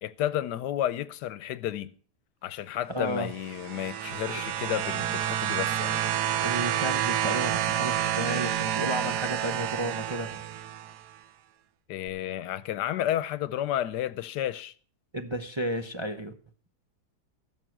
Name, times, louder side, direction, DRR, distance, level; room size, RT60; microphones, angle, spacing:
voice 1, 0.0-1.9 2.4-6.0 11.9-14.7, left 11 dB, 85° left, 1.3 m, -31 dB
voice 2, 2.9-3.3 6.4-10.4 15.1-16.3, right 1 dB, 25° right, 0.6 m, -32 dB
sound 1, 3.3-11.0 12.1-12.2, right 11 dB, 80° right, 1.4 m, -29 dB
16.0 x 6.6 x 6.1 m
omnidirectional pair, 1.7 m